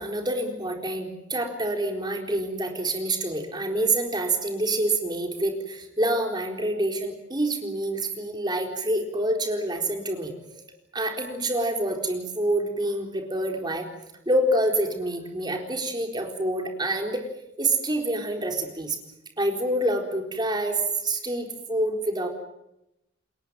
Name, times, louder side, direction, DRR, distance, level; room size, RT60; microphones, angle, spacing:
voice 1, 0.0-10.6 10.9-13.9 14.3-17.3 17.6-19.0 19.4-22.3, right 1 dB, 20° right, 3 dB, 4.1 m, -27 dB
29.5 x 21.0 x 7.8 m, 0.86 s
head